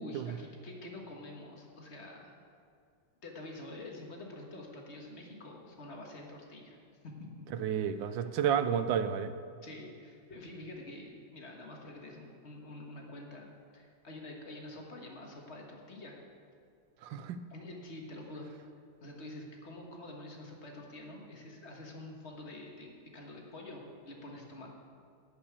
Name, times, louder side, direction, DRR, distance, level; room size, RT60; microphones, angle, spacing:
voice 1, 0.0-2.4 3.2-6.8 7.0-7.1 8.0-8.3 9.6-13.5 13.7-16.2 17.5-18.5 19.0-24.7, left 1 dB, 40° left, 0 dB, 1.6 m, -47 dB
voice 2, 7.6-9.3 17.0-17.4, right 8 dB, 85° right, 11 dB, 1.3 m, -31 dB
11.5 x 5.7 x 8.3 m, 2.4 s
omnidirectional pair, 2.0 m